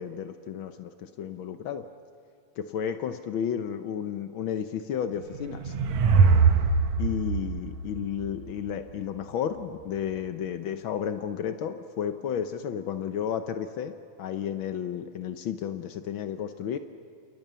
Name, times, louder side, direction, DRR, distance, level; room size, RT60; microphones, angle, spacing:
voice 1, 0.0-1.9 2.6-5.7 7.0-16.8, left 8 dB, 80° left, 9 dB, 1.1 m, -32 dB
sound 1, 5.2-8.7, right 5 dB, 70° right, 2.4 m, -23 dB
29.5 x 29.0 x 6.9 m, 2.6 s
omnidirectional pair, 3.5 m